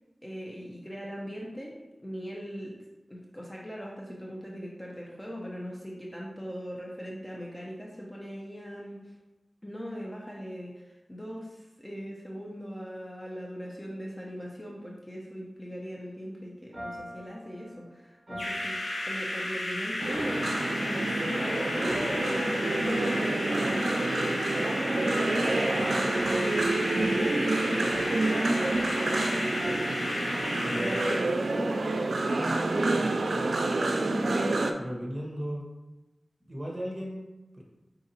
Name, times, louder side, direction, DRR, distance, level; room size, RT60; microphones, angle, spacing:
voice 1, 0.2-2.8 3.1-9.1 9.6-25.8 26.2-29.7 30.7-31.9 32.5-34.2, equal, 15° left, -2 dB, 0.7 m, -39 dB
sound 1, 16.7-19.7 20.1-21.5 21.9-23.3 23.6-25.3 25.7-30.4, equal, 45° right, 1.5 m, -45 dB
lazerbrain instrument, 18.4-31.2, left 1 dB, 85° left, 0.9 m, -33 dB
sound 2, 20.0-34.7, right 2 dB, 85° right, 0.3 m, -28 dB
voice 2, 30.6-30.9 34.8-35.6 36.4-37.6, equal, 30° right, -2 dB, 1.3 m, -36 dB
4.8 x 3.8 x 2.8 m, 1.0 s
wide cardioid pair, 55°, 0 cm